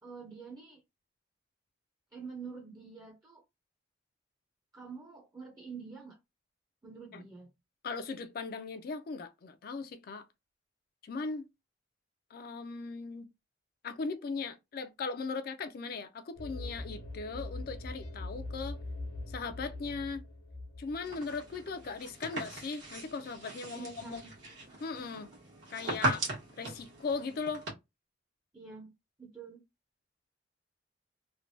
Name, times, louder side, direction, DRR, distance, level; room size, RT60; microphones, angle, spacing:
voice 1, 0.0-0.8 2.1-3.4 4.7-6.2 6.8-7.5 23.7-24.3 28.5-28.9 29.2-29.6, right 5 dB, 20° right, 0.5 m, -47 dB
voice 2, 7.8-10.2 11.0-11.5 12.3-13.3 13.8-18.8 19.3-20.2 20.8-24.2 24.8-25.3 25.7-26.3 26.6-27.6, left 4 dB, 55° left, 0.4 m, -38 dB
sound 1, 16.4-22.0, left 2 dB, 85° left, 1.0 m, -42 dB
sound 2, 21.0-27.7, right 1 dB, 75° right, 1.2 m, -38 dB
3.2 x 2.1 x 2.6 m
head